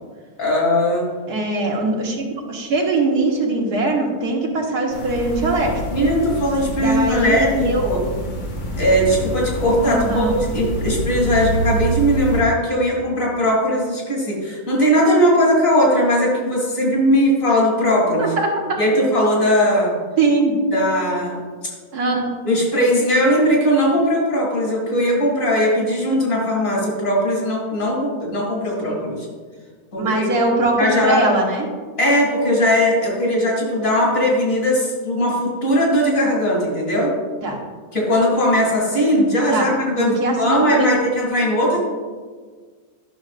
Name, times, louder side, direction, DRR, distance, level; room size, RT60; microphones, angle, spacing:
voice 1, 0.4-1.1 5.9-8.0 8.8-18.3 18.8-19.9 20.7-21.4 22.4-29.3 29.9-30.3 30.8-31.2 32.0-37.1 37.9-41.8, equal, 60° left, -3 dB, 2.6 m, -19 dB
voice 2, 1.3-5.8 6.8-7.8 9.9-10.4 18.2-18.8 20.2-20.6 21.9-22.3 28.8-29.0 30.0-31.7 37.4-37.6 39.5-39.7 40.0-40.9, right 2 dB, 85° right, 0 dB, 1.6 m, -21 dB
sound 1, 4.9-12.4, right 1 dB, 85° left, 1.7 m, -26 dB
11.0 x 6.2 x 2.4 m, 1.5 s
omnidirectional pair, 1.6 m